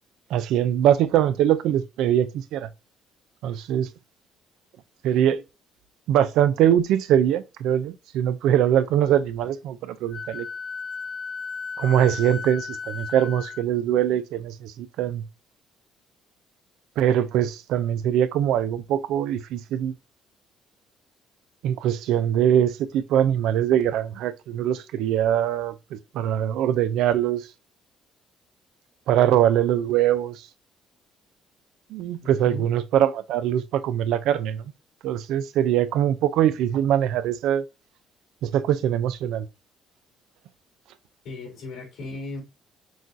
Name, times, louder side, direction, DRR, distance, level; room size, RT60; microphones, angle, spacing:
voice 1, 0.3-2.7 3.4-3.9 5.0-5.4 6.1-10.5 11.8-15.2 17.0-19.9 21.6-27.5 29.1-30.5 31.9-34.7 35.0-37.6 38.4-39.5, right 10 dB, 80° right, 0.4 m, -22 dB
Wind instrument woodwind instrument, 10.1-13.6, left 5 dB, 40° left, 0.7 m, -35 dB
voice 2, 32.2-32.7 41.2-42.4, left 2 dB, 75° left, 2.7 m, -37 dB
6.1 x 2.4 x 2.5 m
supercardioid pair, 80°, 0 cm